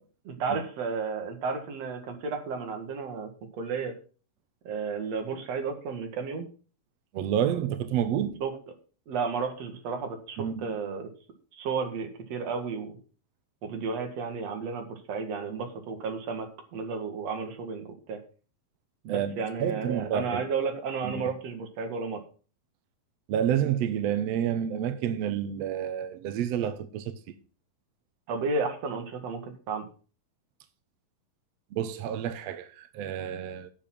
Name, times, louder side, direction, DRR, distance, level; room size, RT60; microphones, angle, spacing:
voice 1, 0.2-3.3 3.6-3.9 4.6-6.5 8.4-8.5 9.1-11.1 11.5-13.0 13.6-18.2 19.0-22.2 28.3-29.4 29.7-29.8, right 4 dB, 50° right, 2.6 m, -32 dB
voice 2, 7.1-8.4 10.4-10.7 19.1-20.4 21.0-21.3 23.3-27.1 31.7-33.7, right 9 dB, 80° right, 1.5 m, -29 dB
10.5 x 7.0 x 5.9 m
omnidirectional pair, 4.1 m